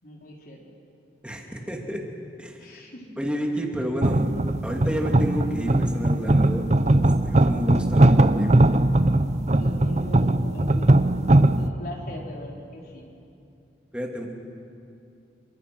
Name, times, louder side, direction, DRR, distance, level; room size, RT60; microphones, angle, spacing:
voice 1, 0.0-0.6 1.3-1.7 2.6-3.0 9.6-11.1 11.6-13.0, left 1 dB, 55° left, -1 dB, 4.6 m, -41 dB
voice 2, 1.2-2.0 2.4-2.8 3.2-4.2 4.6-6.7 7.2-8.6 13.9-14.3, equal, 5° right, 0 dB, 2.7 m, -30 dB
sound 1, 4.0-11.7, right 1 dB, 40° right, 0.8 m, -20 dB
29.0 x 25.0 x 6.2 m, 2.7 s
head